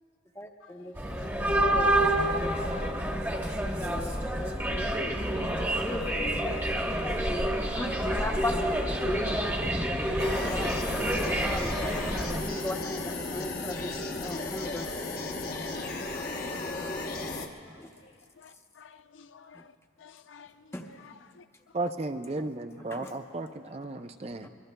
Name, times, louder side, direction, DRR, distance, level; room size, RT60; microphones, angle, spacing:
voice 1, 0.4-0.9 1.6-2.0 2.4-2.5 3.8-5.1 5.8-9.5 10.4-12.0 12.4-13.9 14.2-14.9 17.8-17.9 20.7-20.9 23.0-23.1, left 1 dB, 15° left, 2 dB, 0.8 m, -37 dB
sound 1, 1.0-12.4, right 1 dB, 10° right, 1.1 m, -28 dB
voice 2, 1.1-1.5 4.1-5.0 13.3-13.5 13.8-15.0 15.7-16.3 16.8-17.2 17.6-17.7 18.0-18.1 18.4-21.5, left 6 dB, 75° left, 10 dB, 0.5 m, -55 dB
sound 2, 10.2-17.5, left 2 dB, 50° left, 1.0 m, -35 dB
voice 3, 21.7-24.5, right 2 dB, 30° right, 7 dB, 0.4 m, -34 dB
24.0 x 23.0 x 2.2 m, 2.3 s
head